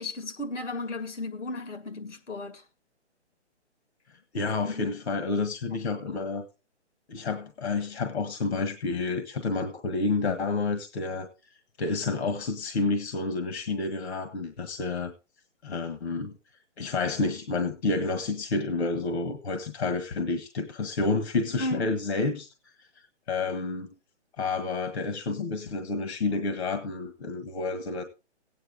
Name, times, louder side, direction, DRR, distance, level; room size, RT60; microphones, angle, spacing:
voice 1, 0.0-2.6 4.5-5.0 5.7-5.9 21.6-22.0, left 2 dB, 85° left, 2.3 m, -35 dB
voice 2, 4.3-6.4 7.1-11.3 11.8-15.1 15.6-16.3 16.8-22.5 23.3-23.9 24.4-28.0, left 3 dB, 65° left, 1.6 m, -29 dB
15.5 x 9.4 x 3.7 m
hypercardioid pair, 145°, 35 cm